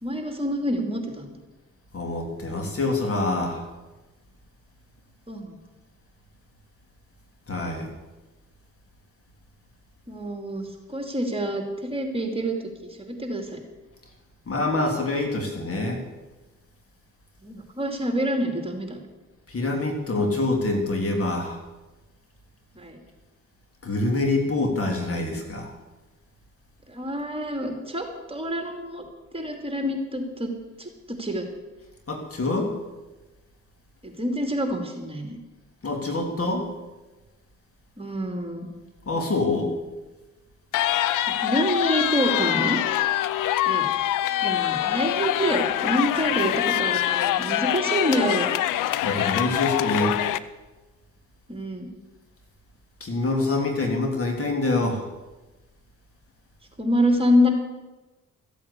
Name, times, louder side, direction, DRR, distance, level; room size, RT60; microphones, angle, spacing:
voice 1, 0.0-1.3 5.3-5.5 10.1-12.6 13.0-13.6 17.4-19.0 22.7-23.0 26.9-29.0 29.3-30.5 30.8-31.5 34.0-35.4 38.0-38.7 41.4-42.8 43.6-43.8 44.4-48.5 51.5-51.9 56.8-57.5, equal, 20° right, 4 dB, 2.8 m, -26 dB
voice 2, 1.9-3.6 7.5-7.9 14.5-16.0 19.5-21.6 23.8-25.7 32.1-32.7 35.8-36.7 39.1-39.7 49.0-50.1 53.0-55.0, left 2 dB, 45° left, 3 dB, 3.3 m, -25 dB
sound 1, 40.7-50.4, left 13 dB, 85° left, 0.6 m, -24 dB
14.5 x 8.3 x 8.4 m, 1.1 s
cardioid pair, 70°, 31 cm